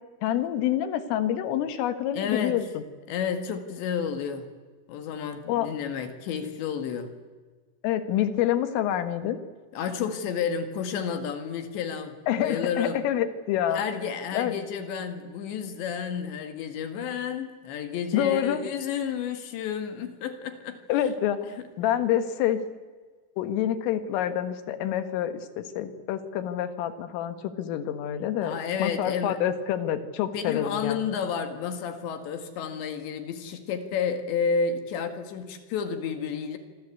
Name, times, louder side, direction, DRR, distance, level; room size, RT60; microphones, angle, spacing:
voice 1, 0.2-2.8 5.5-5.7 7.8-9.4 12.3-13.8 14.3-14.5 18.1-18.6 20.9-21.4 21.8-22.6 23.4-31.0, left 11 dB, 85° left, 10 dB, 4.1 m, -27 dB
voice 2, 2.1-2.6 3.1-4.5 4.9-7.1 9.7-13.0 13.7-20.8 28.4-29.4 30.3-36.6, left 6 dB, 70° left, 8 dB, 3.8 m, -31 dB
26.5 x 25.5 x 8.4 m, 1.5 s
omnidirectional pair, 5.7 m